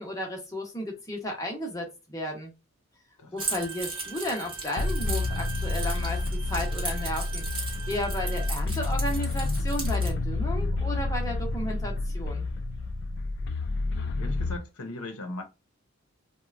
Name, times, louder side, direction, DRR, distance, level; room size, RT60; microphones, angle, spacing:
voice 1, 0.0-2.5 3.3-12.5, left 1 dB, 15° left, 0.7 m, -34 dB
voice 2, 3.2-3.7 14.1-15.4, left 2 dB, 90° left, 0.7 m, -39 dB
Keys jangling, 3.4-10.1, right 3 dB, 25° right, 0.8 m, -37 dB
Bowed string instrument, 3.4-8.5, right 7 dB, 75° right, 0.4 m, -43 dB
sound 1, 4.8-14.6, left 2 dB, 55° left, 0.3 m, -29 dB
3.0 x 2.1 x 2.3 m
head